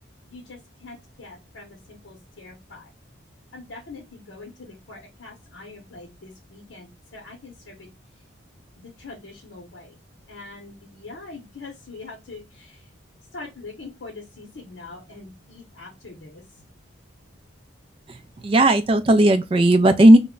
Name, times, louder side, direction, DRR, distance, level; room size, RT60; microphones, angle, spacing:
voice 1, 0.3-2.9 3.5-8.2 8.8-10.0 10.3-12.9 13.3-16.6, left 3 dB, 75° left, 0.7 m, -43 dB
voice 2, 18.1-20.2, right 1 dB, 30° right, 0.3 m, -15 dB
2.2 x 2.0 x 3.5 m
head